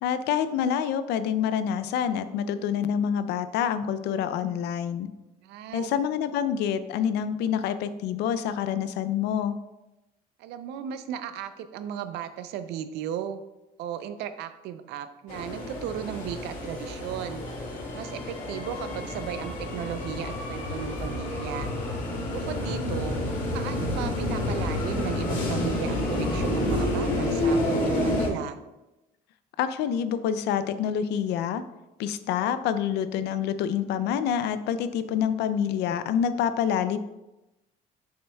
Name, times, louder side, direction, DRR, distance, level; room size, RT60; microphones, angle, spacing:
voice 1, 0.0-5.1 5.7-9.6 29.6-31.6 32.0-37.0, left 8 dB, 85° left, 12 dB, 0.5 m, -27 dB
voice 2, 5.4-5.9 10.4-13.4 13.8-17.4 17.9-21.7 22.3-23.2 23.5-28.6, right 9 dB, 85° right, 11 dB, 0.5 m, -35 dB
sound 1, 15.3-28.3, left 1 dB, 50° left, 2.1 m, -29 dB
6.8 x 6.4 x 2.3 m, 0.97 s
cardioid pair, 110°, 17 cm